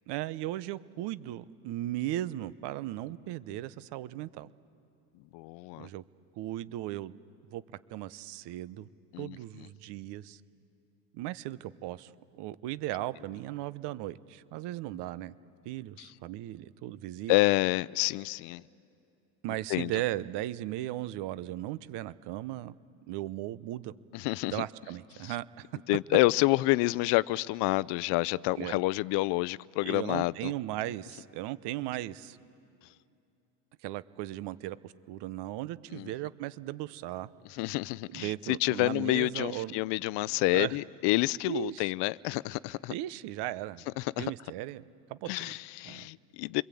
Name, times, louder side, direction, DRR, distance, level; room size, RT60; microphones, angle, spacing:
voice 1, 0.1-4.5 5.7-6.0 6.4-7.1 7.5-7.6 7.9-8.9 9.2-10.4 11.1-12.1 12.4-15.3 15.6-17.3 19.4-22.7 23.1-23.9 24.5-25.7 28.6-28.8 29.8-32.4 33.8-37.3 38.0-39.8 40.5-40.8 41.5-41.9 42.9-43.8 44.2-44.8 45.1-45.5 45.8-46.1, right 14 dB, 60° right, 0.9 m, -37 dB
voice 2, 5.3-5.9 9.1-9.4 16.0-16.1 17.3-18.6 19.7-19.9 24.1-24.6 25.2-25.3 25.9-30.5 35.9-36.1 37.5-42.9 44.0-44.3 45.3-46.6, left 20 dB, 65° left, 0.6 m, -28 dB
28.5 x 22.0 x 8.5 m
supercardioid pair, 110°, 46 cm